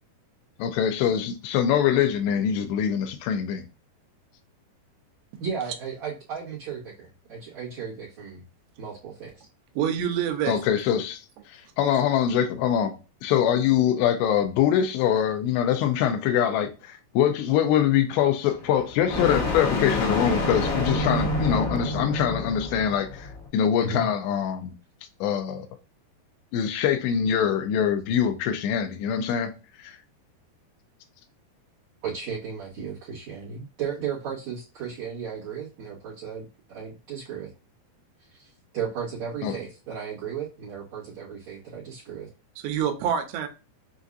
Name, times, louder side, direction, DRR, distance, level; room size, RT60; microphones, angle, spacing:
voice 1, 0.6-3.7 10.5-11.2 11.5-12.9 13.2-24.7 25.2-25.7 26.5-29.5 29.8-30.0 39.4-39.6, left 9 dB, 85° left, 2.8 m, -24 dB
voice 2, 5.4-8.4 8.8-9.4 23.8-24.0 32.0-37.5 38.4-42.3, right 6 dB, 60° right, 2.0 m, -35 dB
voice 3, 9.8-10.6 42.6-43.5, right 9 dB, 90° right, 2.9 m, -26 dB
sound 1, 18.5-23.5, left 2 dB, 70° left, 1.4 m, -28 dB
7.0 x 2.6 x 2.5 m
omnidirectional pair, 4.9 m